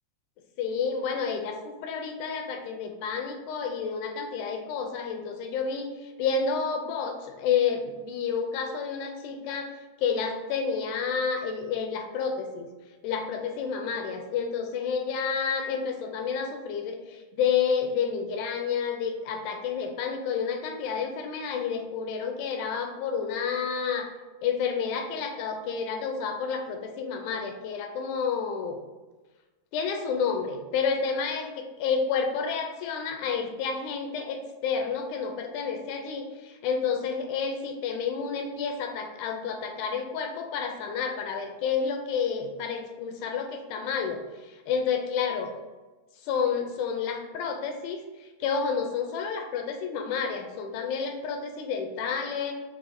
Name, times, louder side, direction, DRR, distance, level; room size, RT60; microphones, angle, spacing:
voice 1, 0.6-9.7 10.0-12.7 13.0-24.1 24.4-28.8 29.7-44.2 44.7-45.5 46.2-52.5, left 6 dB, 85° left, 4 dB, 2.0 m, -30 dB
5.6 x 2.5 x 2.6 m, 1.2 s
omnidirectional pair, 3.4 m